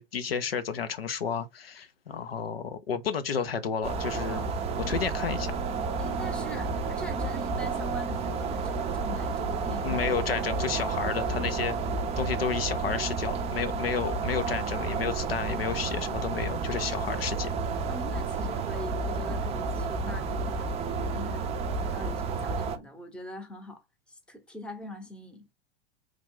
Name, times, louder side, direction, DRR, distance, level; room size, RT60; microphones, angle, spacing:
voice 1, 0.0-4.4 4.8-5.5 9.8-11.8 12.2-17.5, left 6 dB, 80° left, 0.6 m, -31 dB
sound 1, 3.8-22.8, right 4 dB, 20° right, 0.5 m, -31 dB
voice 2, 6.0-10.0 17.9-20.7 21.1-21.5 21.8-23.8 24.1-25.5, equal, 5° left, 0.8 m, -42 dB
3.1 x 2.3 x 3.6 m
figure-of-eight pair, 95°, 29 cm